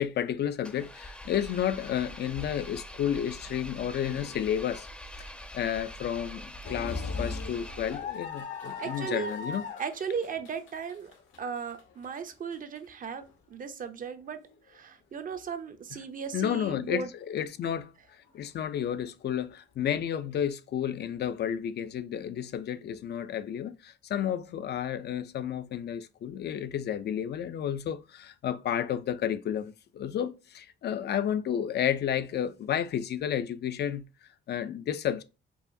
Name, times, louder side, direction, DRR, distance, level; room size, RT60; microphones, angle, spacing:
voice 1, 0.0-4.9 5.2-9.6 16.3-17.9 18.3-35.2, left 9 dB, 55° left, 0.4 m, -31 dB
Engine, 0.6-8.4, equal, 5° left, 0.6 m, -44 dB
sound 1, 6.6-12.8 13.3-13.4 14.5-14.7, left 4 dB, 80° left, 1.1 m, -38 dB
voice 2, 8.8-9.3 9.8-11.1 11.4-14.4 14.7-17.1, right 6 dB, 45° right, 0.6 m, -36 dB
4.7 x 2.4 x 2.7 m
cardioid pair, 90°, 20 cm